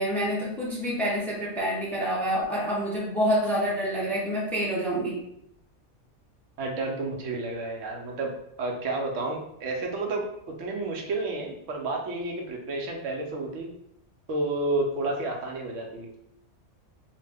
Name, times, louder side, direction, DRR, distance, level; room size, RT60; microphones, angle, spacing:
voice 1, 0.0-5.2, equal, ahead, -5 dB, 0.5 m, -27 dB
voice 2, 6.6-8.3 8.6-13.7 14.3-16.1, right 2 dB, 85° right, 1 dB, 1.0 m, -31 dB
2.9 x 2.1 x 3.3 m, 0.76 s
omnidirectional pair, 1.3 m